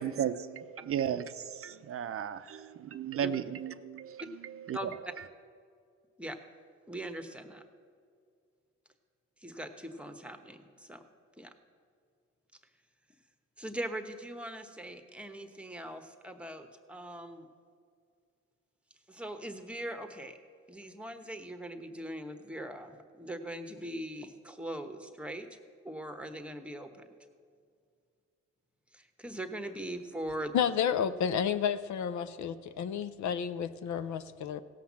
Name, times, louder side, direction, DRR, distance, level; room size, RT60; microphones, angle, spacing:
voice 1, 0.0-4.9 5.2-5.3, right 9 dB, 50° right, 11 dB, 0.5 m, -35 dB
voice 2, 6.9-7.6 9.4-11.0 11.4-11.5 13.6-17.5 19.1-20.4 20.7-25.5 25.8-27.1 28.9-30.5, right 1 dB, 5° right, 7 dB, 1.1 m, -41 dB
voice 3, 30.5-34.6, left 8 dB, 70° left, 13 dB, 0.6 m, -31 dB
17.0 x 5.8 x 7.4 m, 2.2 s
cardioid pair, 90°, 30 cm